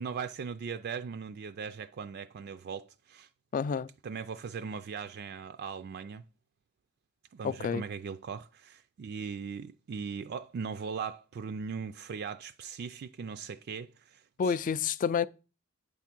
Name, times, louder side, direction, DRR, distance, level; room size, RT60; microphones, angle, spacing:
voice 1, 0.0-3.3 4.0-6.2 7.3-14.6, right 6 dB, 50° right, 0.3 m, -39 dB
voice 2, 3.5-3.9 7.4-7.8 14.4-15.3, left 6 dB, 40° left, 0.3 m, -29 dB
8.5 x 3.6 x 5.9 m
head